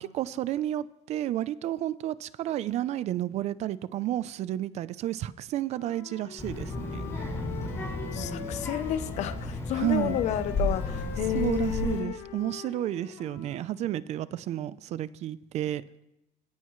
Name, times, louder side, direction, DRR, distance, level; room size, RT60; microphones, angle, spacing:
voice 1, 0.0-7.0 9.8-10.2 11.3-15.8, right 13 dB, 45° right, 0.6 m, -31 dB
Wind instrument woodwind instrument, 5.7-9.4 9.7-13.7, left 8 dB, 90° left, 1.9 m, -44 dB
Child speech kid speaking, 6.4-12.0, left 2 dB, 20° left, 5.6 m, -33 dB
voice 2, 8.1-12.2, left 11 dB, 50° left, 0.7 m, -31 dB
27.0 x 17.0 x 3.2 m
cardioid pair, 150°, 15 cm